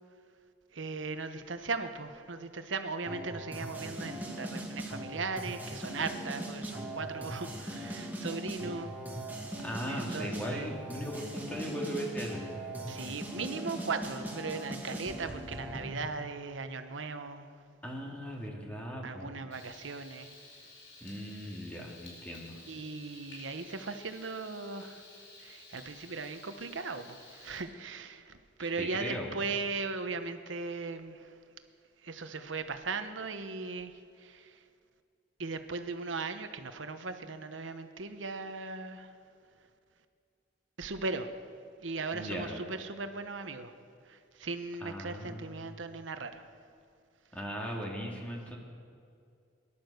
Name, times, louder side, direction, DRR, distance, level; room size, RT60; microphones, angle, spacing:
voice 1, 0.7-8.9 9.9-10.7 12.9-17.5 19.0-20.3 22.6-25.0 25.4-31.4 32.0-34.6 35.4-39.1 40.8-41.3 41.8-43.7 44.0-46.4, right 4 dB, 75° right, 8 dB, 1.0 m, -38 dB
sound 1, 3.1-16.0, right 1 dB, 10° right, 2.3 m, -40 dB
voice 2, 9.6-12.6 17.8-19.4 21.0-22.6 28.6-29.3 42.1-42.6 44.8-45.6 47.3-48.6, equal, 10° left, -1 dB, 2.3 m, -38 dB
Frying (food), 19.5-27.6, left 2 dB, 80° left, 4.7 m, -53 dB
19.0 x 11.5 x 6.6 m, 2.3 s
head